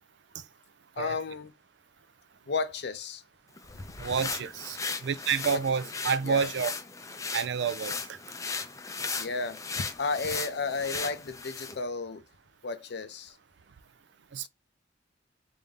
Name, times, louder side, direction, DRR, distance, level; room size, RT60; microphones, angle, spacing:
voice 1, 1.0-1.5 2.5-3.2 3.8-3.9 5.5-5.6 6.2-6.5 9.2-12.2 12.6-13.4 14.4-14.5, left 4 dB, 65° left, 0.6 m, -33 dB
sound 1, 3.6-11.8, left 4 dB, 20° left, 0.5 m, -37 dB
voice 2, 4.0-6.7 7.3-8.2 14.3-14.5, right 6 dB, 70° right, 0.4 m, -29 dB
3.6 x 2.6 x 3.5 m
head